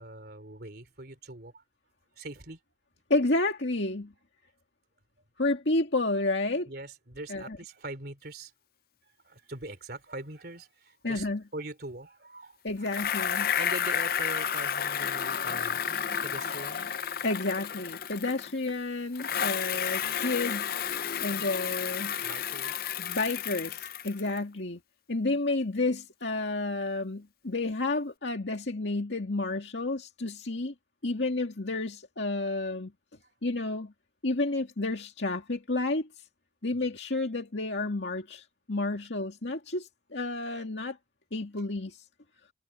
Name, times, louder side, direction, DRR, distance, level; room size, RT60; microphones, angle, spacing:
voice 1, 0.0-1.6 2.2-2.6 6.7-8.5 9.2-13.0 13.3-16.9 22.2-22.9 33.2-33.3 36.7-36.9, right 2 dB, 55° right, 3.5 m, -42 dB
voice 2, 3.1-4.1 5.4-6.7 7.3-7.6 11.0-11.4 12.6-13.5 17.2-20.8 21.2-22.2 23.0-24.8 25.1-30.7 31.0-32.9 33.4-33.9 34.2-36.1 36.6-41.0 41.3-42.0, left 2 dB, 70° left, 2.1 m, -30 dB
Bicycle, 12.9-18.7 19.1-24.4, left 8 dB, 50° left, 0.6 m, -31 dB
head